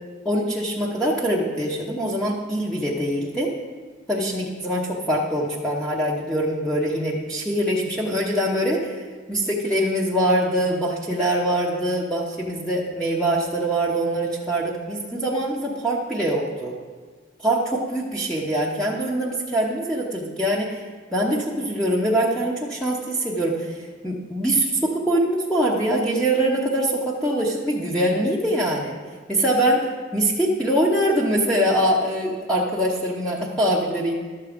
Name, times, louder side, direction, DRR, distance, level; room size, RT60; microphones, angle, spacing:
voice 1, 0.2-3.5 4.1-16.7 17.4-20.8 21.1-28.9 29.3-29.8 30.1-34.1, right 1 dB, 5° left, -5 dB, 0.9 m, -23 dB
12.5 x 7.3 x 5.1 m, 1.5 s
head